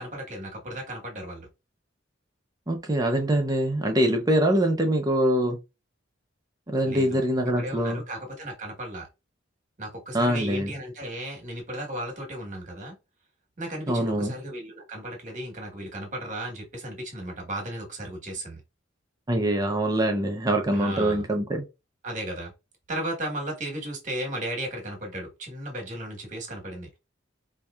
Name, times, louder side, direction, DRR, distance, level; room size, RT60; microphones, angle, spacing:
voice 1, 0.0-1.5 6.8-7.2 7.6-9.1 9.8-13.0 13.6-18.6 20.7-21.2 22.0-22.5 22.9-27.0, right 1 dB, 40° right, 1.3 m, -35 dB
voice 2, 2.7-5.6 6.7-8.0 10.1-10.7 13.9-14.3 19.3-21.6, right 1 dB, 20° right, 0.6 m, -24 dB
4.6 x 2.7 x 2.3 m
head